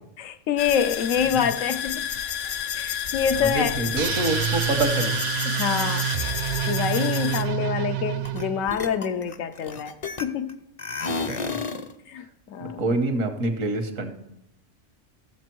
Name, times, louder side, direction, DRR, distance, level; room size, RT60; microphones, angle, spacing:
voice 1, 0.2-2.0 2.8-3.8 5.5-6.1 6.7-9.9 10.2-10.6 12.1-12.8, left 8 dB, 90° left, 1.1 m, -26 dB
sound 1, 0.6-7.4, left 9 dB, 60° left, 0.8 m, -30 dB
voice 2, 3.3-5.2 11.0-11.6 12.8-14.1, right 2 dB, 85° right, 1.6 m, -26 dB
sound 2, 4.0-8.7, right 10 dB, 65° right, 0.7 m, -27 dB
sound 3, 8.3-8.4 8.7-10.5 10.8-11.9, left 4 dB, 40° left, 0.5 m, -31 dB
13.5 x 7.7 x 4.6 m
omnidirectional pair, 1.3 m